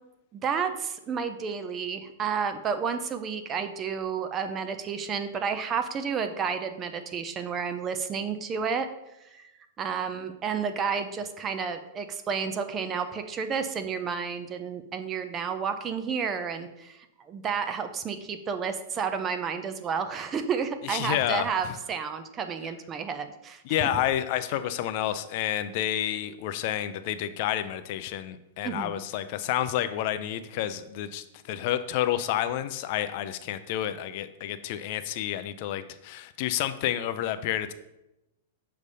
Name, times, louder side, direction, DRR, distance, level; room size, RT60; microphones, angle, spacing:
voice 1, 0.3-8.9 9.8-23.9 28.6-29.0, right 6 dB, 20° right, 9 dB, 0.5 m, -31 dB
voice 2, 20.8-21.8 23.6-37.7, left 12 dB, 50° left, 11 dB, 0.4 m, -30 dB
6.5 x 3.3 x 5.4 m, 0.92 s
hypercardioid pair, 145°, 0 cm